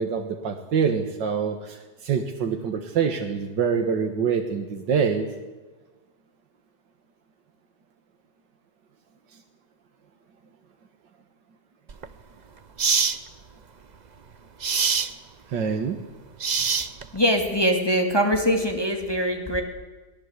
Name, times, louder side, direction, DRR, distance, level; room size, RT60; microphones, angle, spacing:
voice 1, 0.0-5.3 15.5-16.0, right 6 dB, 90° right, 4 dB, 2.1 m, -25 dB
sound 1, 11.9-12.1 12.8-13.2 14.6-15.1 16.4-17.2, right 5 dB, 40° right, 0.7 m, -23 dB
voice 2, 17.1-19.6, equal, 15° left, 3 dB, 2.5 m, -22 dB
23.0 x 17.5 x 8.2 m, 1.2 s
omnidirectional pair, 1.9 m